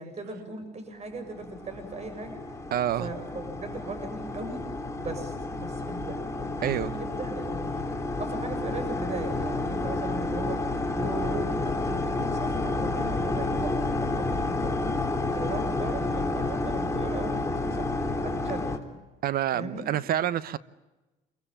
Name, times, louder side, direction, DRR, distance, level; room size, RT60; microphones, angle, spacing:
voice 1, 0.0-2.5 3.0-4.6 5.0-7.8 8.2-10.6 10.9-14.9 15.3-17.9 18.2-18.7 19.5-19.9, right 2 dB, 40° right, 7.4 m, -38 dB
sound 1, 1.3-18.8, left 2 dB, 15° left, 3.4 m, -30 dB
voice 2, 2.7-3.1 6.6-7.0 19.2-20.6, right 11 dB, 65° right, 1.2 m, -27 dB
27.0 x 23.5 x 8.9 m
cardioid pair, 110°, 17 cm